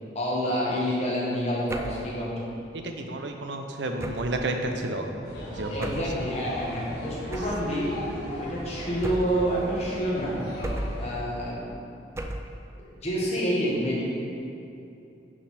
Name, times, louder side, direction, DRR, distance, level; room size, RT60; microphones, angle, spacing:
voice 1, 0.1-2.3 5.7-7.9 8.4-10.4 11.0-11.7 13.0-14.0, equal, 35° left, -6 dB, 1.7 m, -28 dB
sound 1, 1.7-2.1 4.0-4.4 5.8-6.2 7.3-7.7 9.0-9.5 10.6-11.1 12.2-12.6, right 1 dB, 15° right, 0.3 m, -34 dB
voice 2, 2.7-5.1 5.5-5.9, right 2 dB, 70° right, 4 dB, 0.7 m, -31 dB
sound 2, 5.2-11.2, left 1 dB, 60° left, 1.7 m, -37 dB
11.0 x 4.0 x 4.3 m, 2.7 s
head